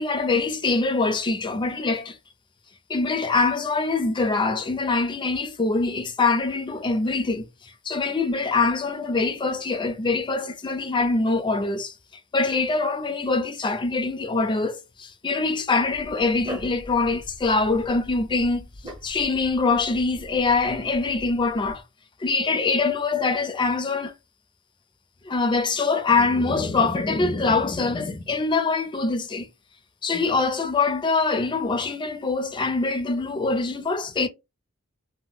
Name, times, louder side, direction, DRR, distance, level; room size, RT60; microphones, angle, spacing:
voice 1, 0.0-2.2 2.9-7.5 7.9-11.9 12.3-18.7 19.0-21.8 22.2-24.1 25.3-29.5 30.0-34.3, left 3 dB, 25° left, 0.4 m, -24 dB
Dog, 15.9-21.8, equal, 25° right, 0.6 m, -42 dB
2.1 x 2.0 x 3.7 m
head